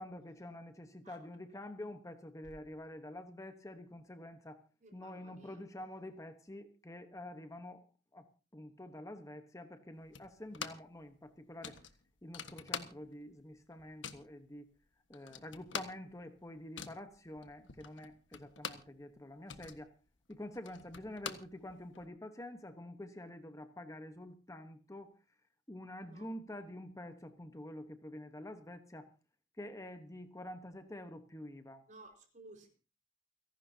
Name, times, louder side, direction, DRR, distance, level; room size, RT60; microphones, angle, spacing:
voice 1, 0.0-4.6 4.9-7.8 8.1-11.8 12.2-14.7 15.1-19.9 20.3-25.1 25.7-29.1 29.6-31.8, left 1 dB, 15° left, 8 dB, 1.1 m, -48 dB
voice 2, 4.8-5.6 15.2-15.4 26.0-26.3 31.9-32.7, right 2 dB, 45° right, 4 dB, 4.8 m, -56 dB
sound 1, 10.1-11.0 11.2-11.3 11.6-13.3 13.6-14.3 14.8-14.9 15.1-19.0 19.3-22.1, left 6 dB, 85° left, 1.5 m, -45 dB
29.5 x 11.5 x 2.8 m, 0.34 s
head